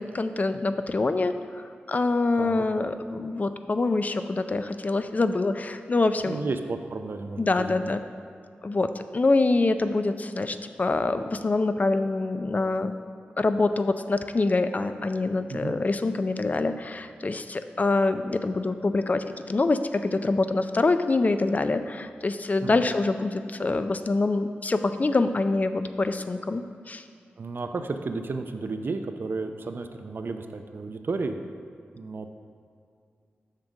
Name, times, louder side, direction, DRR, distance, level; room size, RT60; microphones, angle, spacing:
voice 1, 0.0-6.4 7.4-8.0 8.6-12.9 13.4-27.0, left 3 dB, 40° left, 9 dB, 0.4 m, -25 dB
voice 2, 6.2-7.7 15.5-15.8 22.6-22.8 27.4-31.4 32.0-32.3, right 3 dB, 60° right, 7 dB, 0.5 m, -32 dB
7.4 x 3.7 x 6.3 m, 2.4 s
cardioid pair, 50°, 4 cm